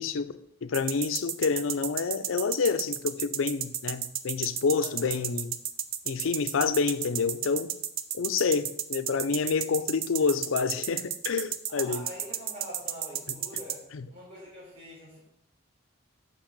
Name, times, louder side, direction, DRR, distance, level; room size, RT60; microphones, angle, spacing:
voice 1, 0.0-5.6 6.1-7.8 8.1-12.1 13.3-13.4 13.9-14.1, left 5 dB, 75° left, 0.5 m, -28 dB
sound 1, 0.7-13.7, right 10 dB, 50° right, 0.5 m, -32 dB
voice 2, 4.8-5.2 11.7-13.8 14.1-15.2, equal, 30° right, 4.0 m, -44 dB
6.2 x 6.0 x 6.5 m
head